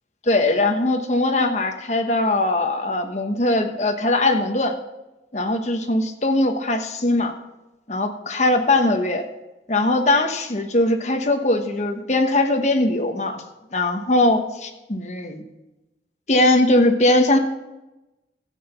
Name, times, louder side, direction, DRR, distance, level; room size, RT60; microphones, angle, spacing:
voice 1, 0.3-4.7 5.3-7.3 7.9-9.2 9.7-13.4 13.7-15.4 16.3-17.4, left 2 dB, 40° left, 5 dB, 1.2 m, -20 dB
14.5 x 8.1 x 5.6 m, 1.0 s
head